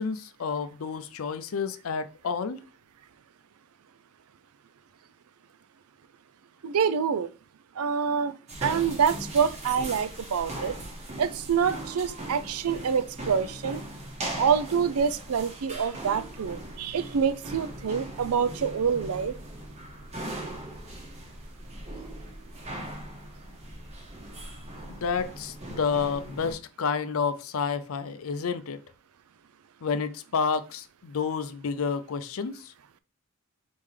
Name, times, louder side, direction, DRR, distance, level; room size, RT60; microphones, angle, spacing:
voice 1, 0.0-2.6 24.9-28.8 29.8-32.7, left 5 dB, 70° left, 0.5 m, -30 dB
voice 2, 6.6-7.3 7.8-8.3 8.6-10.7 11.2-13.8 14.4-19.3, right 6 dB, 85° right, 0.4 m, -26 dB
sound 1, 8.5-26.5, right 1 dB, 30° right, 1.1 m, -39 dB
4.2 x 3.7 x 3.3 m
head